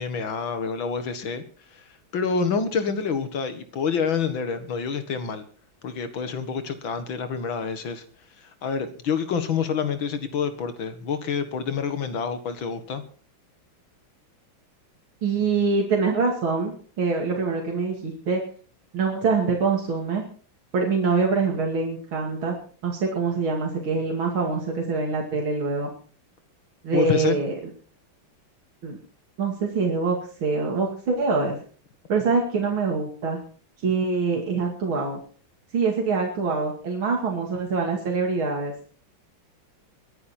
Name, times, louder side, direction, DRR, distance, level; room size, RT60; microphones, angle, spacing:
voice 1, 0.0-1.4 2.1-5.5 5.8-8.0 8.6-13.0 26.9-27.4, left 6 dB, 70° left, 9 dB, 2.4 m, -27 dB
voice 2, 15.2-18.4 18.9-20.2 20.7-22.6 22.8-25.9 26.8-27.5 28.8-29.0 29.4-31.6 32.1-33.4 33.8-35.2 35.7-38.7, right 4 dB, 75° right, 0 dB, 3.3 m, -24 dB
22.5 x 10.0 x 4.4 m, 0.42 s
omnidirectional pair, 2.3 m